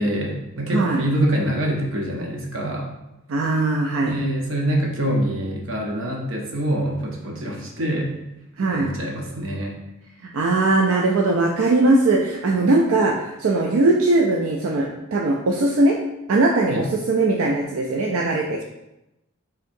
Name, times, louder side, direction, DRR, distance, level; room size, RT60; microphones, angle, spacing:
voice 1, 0.0-2.9 4.0-8.2 8.6-9.8 16.7-16.9, right 1 dB, 70° right, 0 dB, 0.8 m, -25 dB
voice 2, 3.3-4.1 8.6-8.9 10.2-16.0 16.3-18.6, right 2 dB, 85° right, 0 dB, 0.4 m, -20 dB
4.4 x 3.7 x 2.6 m, 0.91 s
head